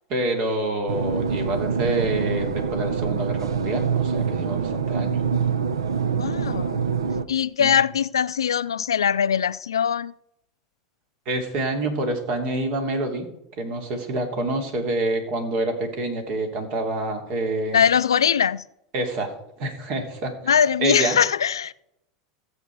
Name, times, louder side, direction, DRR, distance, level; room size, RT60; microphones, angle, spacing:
voice 1, 0.1-5.2 7.6-7.7 11.2-13.3 13.6-17.8 18.9-19.3 19.6-20.5 20.8-21.2, right 2 dB, 55° right, 2.9 m, -27 dB
sound 1, 0.9-7.2, right 6 dB, 85° right, 0.7 m, -25 dB
voice 2, 6.2-6.8 7.3-10.1 17.7-18.6 20.5-21.7, left 8 dB, 85° left, 0.3 m, -21 dB
15.0 x 8.2 x 4.7 m
hypercardioid pair, 85°, 2 cm